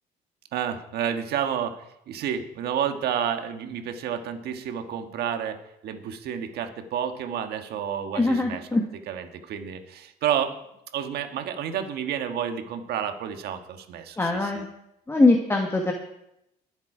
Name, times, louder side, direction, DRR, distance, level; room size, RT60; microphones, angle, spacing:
voice 1, 0.5-8.7 9.1-10.5 10.9-14.6, right 8 dB, 70° right, 7 dB, 1.5 m, -30 dB
voice 2, 8.1-8.8 14.2-14.7 15.1-15.9, left 2 dB, 15° left, 1 dB, 1.5 m, -22 dB
21.0 x 7.3 x 5.0 m, 0.83 s
cardioid pair, 110°, 17 cm